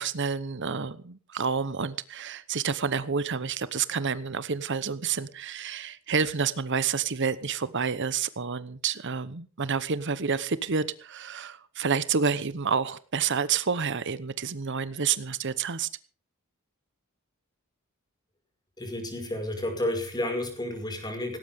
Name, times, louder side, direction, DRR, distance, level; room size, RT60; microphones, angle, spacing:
voice 1, 0.0-15.9, right 6 dB, 55° right, 0.9 m, -29 dB
voice 2, 18.8-21.4, left 1 dB, 20° left, 5.5 m, -31 dB
18.5 x 17.5 x 3.6 m
head